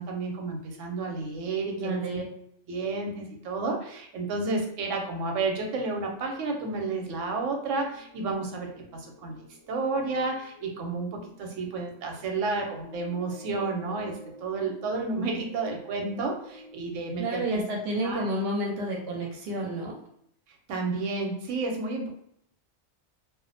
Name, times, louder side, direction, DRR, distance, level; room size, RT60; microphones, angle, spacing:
voice 1, 0.0-2.2 2.7-17.6 18.0-18.3 20.7-22.1, right 3 dB, 90° right, 2 dB, 0.9 m, -31 dB
voice 2, 1.8-2.2 17.2-19.9, right 1 dB, 65° right, 0 dB, 0.7 m, -30 dB
sound 1, 5.5-16.8, equal, 35° left, 0.6 m, -51 dB
2.4 x 2.0 x 2.5 m, 0.71 s
omnidirectional pair, 1.3 m